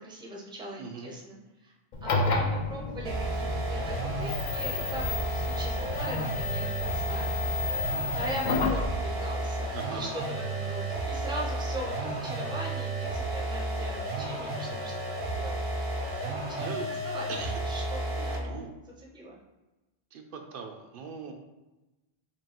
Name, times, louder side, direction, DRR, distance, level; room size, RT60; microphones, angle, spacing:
voice 1, 0.0-1.4 1.6-1.7 2.0-7.5 8.1-14.9 15.2-17.3 17.7-17.8 18.2-18.7 19.1-19.4, right 1 dB, 5° right, -2 dB, 0.5 m, -40 dB
voice 2, 0.8-1.1 9.7-10.1 16.3-16.9 17.3-17.6 18.1-18.7 20.1-21.3, right 5 dB, 65° right, 4 dB, 0.7 m, -40 dB
sound 1, 1.9-8.9, left 3 dB, 55° left, 0.6 m, -31 dB
sound 2, 3.1-18.5, right 1 dB, 85° right, 1.1 m, -32 dB
4.4 x 2.8 x 2.9 m, 1.1 s
omnidirectional pair, 1.0 m